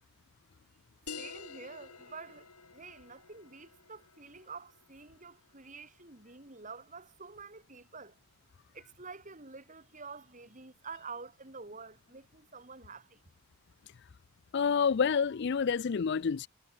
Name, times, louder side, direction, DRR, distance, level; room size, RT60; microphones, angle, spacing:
sound 1, 1.1-6.1, left 5 dB, 90° left, 5.8 m, -49 dB
voice 1, 1.2-2.5 2.7-8.2 8.7-13.2, right 4 dB, 35° right, 2.9 m, -48 dB
voice 2, 14.5-16.5, left 6 dB, 50° left, 0.4 m, -28 dB
head